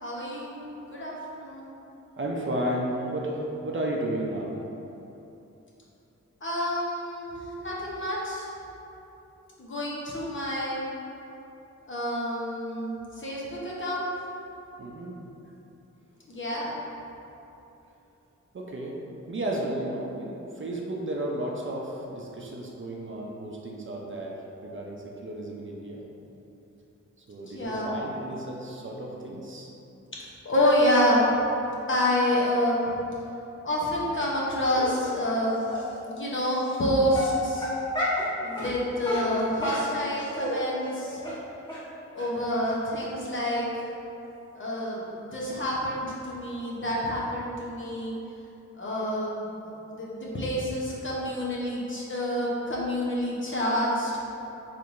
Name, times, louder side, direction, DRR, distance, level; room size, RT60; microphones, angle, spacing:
voice 1, 0.0-0.6 0.9-1.7 6.4-8.5 9.6-10.9 11.9-14.1 16.3-16.7 27.5-27.9 30.4-31.3 31.9-33.0 33.6-35.6 36.1-37.7 38.4-41.2 42.1-43.7 44.5-48.1 48.8-54.1, left 1 dB, 40° left, -5 dB, 0.9 m, -28 dB
voice 2, 2.2-4.6 14.8-15.1 18.5-19.0 19.3-26.0 27.3-29.7, right 1 dB, 45° right, -2 dB, 0.6 m, -33 dB
Dog, 34.7-35.1 35.7-35.8 36.6-36.8 37.1-38.3 38.6-38.7 39.0-40.5 40.8-41.0 41.2-41.4 41.7-41.8 42.2-42.3 42.6-42.7 43.0-43.1, left 1 dB, 15° left, 1.4 m, -31 dB
4.5 x 3.3 x 2.6 m, 3.0 s
wide cardioid pair, 75°, 29 cm